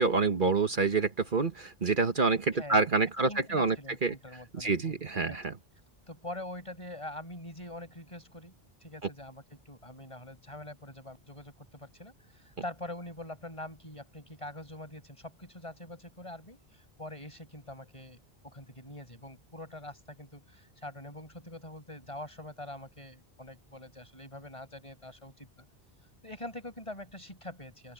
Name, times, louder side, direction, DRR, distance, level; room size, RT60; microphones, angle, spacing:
voice 1, 0.0-3.7 4.0-4.1 4.5-5.5, right 4 dB, 55° right, 1.5 m, -27 dB
voice 2, 2.5-2.8 3.2-5.4 6.1-8.5 8.8-18.2 18.4-25.6 26.2-27.9, left 1 dB, 30° left, 6.7 m, -44 dB
open air
omnidirectional pair, 1.0 m